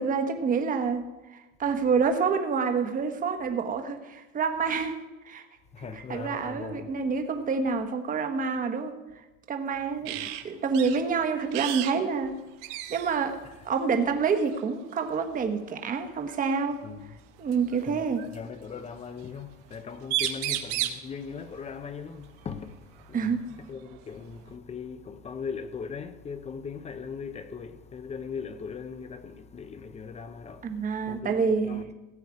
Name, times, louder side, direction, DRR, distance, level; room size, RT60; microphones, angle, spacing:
voice 1, 0.0-5.4 5.8-9.0 9.5-12.4 12.7-16.8 17.4-18.2 23.1-23.5 30.6-31.8, right 5 dB, 25° right, 1.2 m, -28 dB
voice 2, 5.7-7.0 10.0-10.3 16.8-17.2 17.8-18.0 18.3-31.9, left 6 dB, 20° left, 0.7 m, -39 dB
sound 1, 10.0-10.4 10.7-11.0 11.5-12.0 12.2-12.3 12.6-13.2 14.4-14.6 16.3-16.4 17.5-18.4 19.7-19.8 20.0-21.1 23.0-23.1 23.5-24.5, right 12 dB, 70° right, 1.2 m, -32 dB
17.0 x 8.3 x 4.8 m
supercardioid pair, 145°, 36 cm